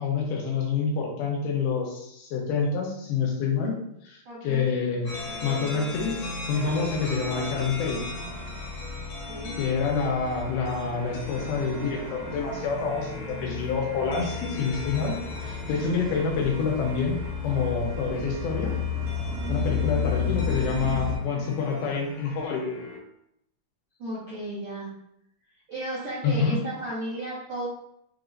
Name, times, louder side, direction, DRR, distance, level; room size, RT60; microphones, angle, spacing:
voice 1, 0.0-3.7 4.0-5.1 5.4-8.0 9.6-15.1 15.4-17.2 17.4-18.8 19.5-22.7 26.2-26.6, left 5 dB, 80° left, 0 dB, 2.7 m, -27 dB
voice 2, 4.2-4.6 9.2-9.5 24.0-24.9 25.7-27.7, right 1 dB, 60° right, -9 dB, 1.4 m, -34 dB
sound 1, 5.0-23.0, left 2 dB, 65° left, 2.0 m, -39 dB
sound 2, 6.5-21.2, left 4 dB, 85° right, 3.0 m, -34 dB
6.8 x 3.0 x 2.6 m, 0.76 s
omnidirectional pair, 4.6 m